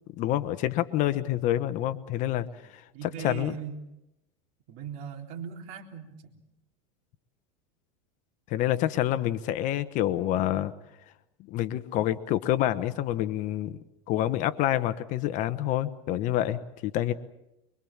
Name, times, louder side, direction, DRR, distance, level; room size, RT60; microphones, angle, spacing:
voice 1, 0.2-2.5 2.7-3.5 8.5-10.7 11.5-13.8 14.1-17.1, left 13 dB, 45° left, 12 dB, 1.1 m, -27 dB
voice 2, 2.9-3.8 4.7-6.4, right 8 dB, 55° right, 3 dB, 3.8 m, -39 dB
24.5 x 23.5 x 7.3 m, 0.89 s
supercardioid pair, 150°, 19 cm